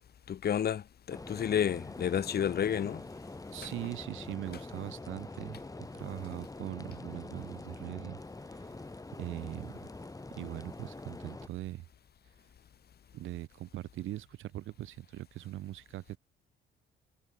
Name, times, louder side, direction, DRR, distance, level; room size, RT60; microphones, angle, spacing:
voice 1, 0.3-3.1, left 9 dB, 50° left, 1.5 m, -31 dB
sound 1, 1.1-11.5, left 2 dB, 15° left, 7.4 m, -45 dB
voice 2, 3.5-8.2 8.5-8.7 9.2-9.9 10.3-11.8 13.1-16.2, right 14 dB, 85° right, 2.7 m, -41 dB
cardioid pair, 90°, 20 cm